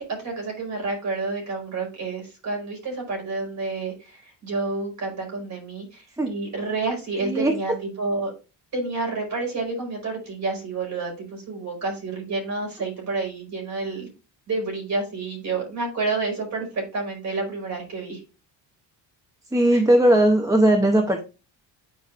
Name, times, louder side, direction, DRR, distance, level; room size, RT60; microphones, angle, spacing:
voice 1, 0.0-8.3 8.7-14.1 14.5-18.2 19.7-19.8, right 3 dB, 35° right, -1 dB, 4.6 m, -29 dB
voice 2, 7.2-7.5 19.5-21.2, right 1 dB, 5° right, 3 dB, 0.7 m, -18 dB
9.6 x 4.9 x 2.5 m, 0.29 s
cardioid pair, 150°, 46 cm